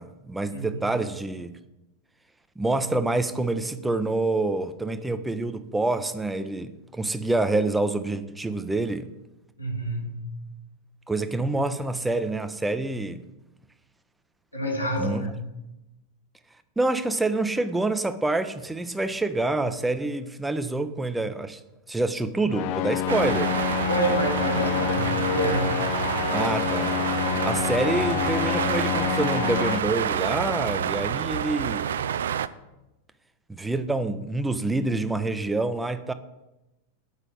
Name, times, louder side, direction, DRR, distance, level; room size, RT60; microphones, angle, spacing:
voice 1, 0.0-1.6 2.6-9.1 11.1-13.2 15.0-15.3 16.8-21.6 21.9-23.5 26.3-26.9 27.4-31.9 33.5-36.1, right 2 dB, 5° right, 0.6 m, -27 dB
voice 2, 9.6-10.3 14.5-15.4 23.8-25.8 26.1-26.3, right 1 dB, 85° left, 2.2 m, -28 dB
sound 1, 22.5-29.8, left 13 dB, 45° left, 0.4 m, -28 dB
sound 2, 23.1-32.5, right 9 dB, 65° right, 0.3 m, -28 dB
8.1 x 5.4 x 7.2 m
figure-of-eight pair, 90°, 0 cm